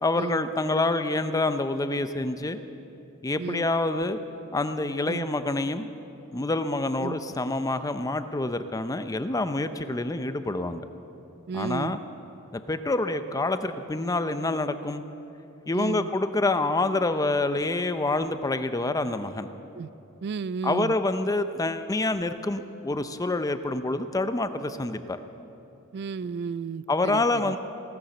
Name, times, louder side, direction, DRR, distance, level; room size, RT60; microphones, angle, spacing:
voice 1, 0.0-2.6 3.2-4.2 4.5-5.9 6.3-10.8 11.5-12.0 12.5-15.0 15.7-19.5 20.6-25.2 26.9-27.6, left 2 dB, 15° left, 10 dB, 0.5 m, -27 dB
voice 2, 11.5-12.0 15.7-16.1 19.7-19.9 20.2-20.9 25.9-27.5, right 5 dB, 50° right, 18 dB, 0.3 m, -33 dB
17.0 x 10.0 x 6.6 m, 2.8 s
head